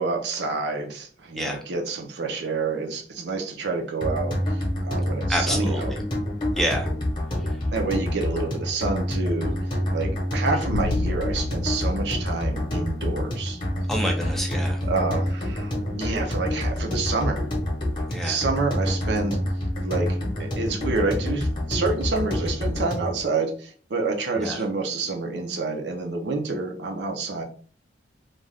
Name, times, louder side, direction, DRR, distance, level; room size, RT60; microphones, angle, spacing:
voice 1, 0.0-5.9 7.7-13.6 14.8-17.5 18.2-19.4 19.8-27.4, right 3 dB, 80° right, 2 dB, 0.6 m, -28 dB
sound 1, 4.0-23.2, left 1 dB, 25° left, 0.8 m, -27 dB
voice 2, 5.3-6.0 6.6-6.9 13.9-14.8 18.1-18.4 24.4-24.6, equal, ahead, 1 dB, 0.4 m, -28 dB
sound 2, 10.7-13.2, left 2 dB, 80° left, 0.4 m, -31 dB
2.5 x 2.3 x 3.3 m, 0.42 s
head